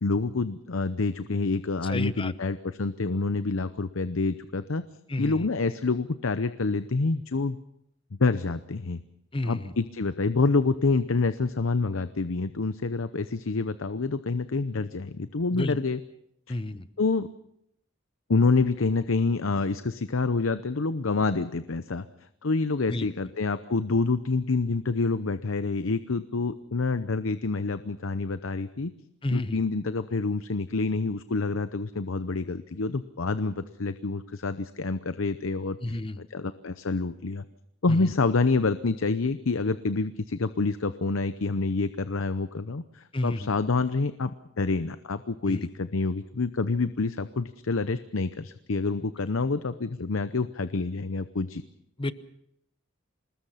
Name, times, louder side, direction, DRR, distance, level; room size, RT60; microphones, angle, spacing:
voice 1, 0.0-4.8 5.2-7.6 8.2-9.0 9.4-16.0 17.0-17.3 18.3-22.1 22.4-28.9 29.3-37.4 37.8-51.6, left 3 dB, 80° left, 12 dB, 0.8 m, -27 dB
voice 2, 1.8-2.3 5.1-5.5 9.3-9.7 15.5-15.8 16.5-16.9 22.9-23.1 29.2-29.6 35.8-36.2 37.9-38.1 43.1-43.5 45.5-45.7 52.0-52.1, left 2 dB, 25° left, 13 dB, 0.9 m, -31 dB
26.5 x 20.0 x 5.7 m, 0.75 s
head